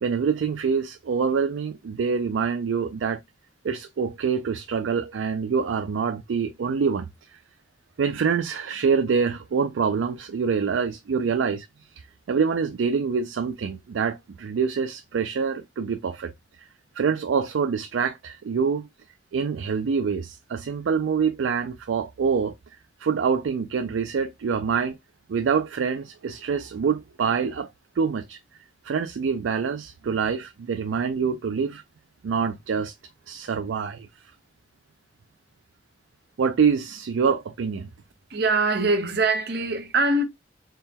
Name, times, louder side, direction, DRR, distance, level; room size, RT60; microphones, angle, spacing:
voice 1, 0.0-3.2 3.6-7.4 8.0-11.7 12.0-16.3 16.6-16.7 17.0-18.9 19.3-22.5 23.0-25.0 25.3-27.7 28.0-28.4 28.8-31.8 32.2-32.9 33.3-34.1 36.4-37.9, right 6 dB, 85° right, 0.4 m, -25 dB
voice 2, 38.3-40.2, right 3 dB, 55° right, 0.8 m, -23 dB
4.2 x 2.2 x 3.5 m
head